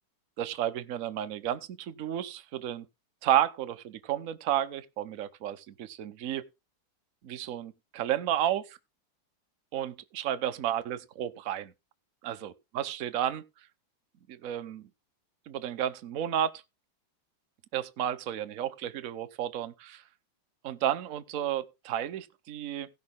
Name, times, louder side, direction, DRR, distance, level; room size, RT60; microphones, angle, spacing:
voice 1, 0.4-2.9 3.2-6.5 7.2-8.8 9.7-11.7 12.2-13.4 14.3-14.9 15.5-16.5 17.7-20.0 20.6-22.9, right 11 dB, 60° right, 0.8 m, -32 dB
17.0 x 6.3 x 3.7 m
omnidirectional pair, 2.4 m